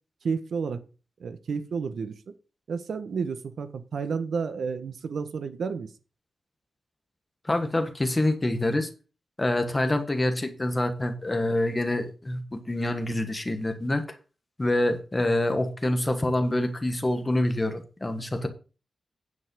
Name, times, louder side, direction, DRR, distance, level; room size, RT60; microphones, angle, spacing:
voice 1, 0.2-0.8 1.2-2.3 2.7-5.9, right 5 dB, 70° right, 11 dB, 1.1 m, -31 dB
voice 2, 7.4-8.9 9.4-14.0 14.6-18.5, left 1 dB, 15° left, 7 dB, 1.4 m, -26 dB
9.7 x 5.4 x 6.2 m, 0.35 s
wide cardioid pair, 175°, 0 cm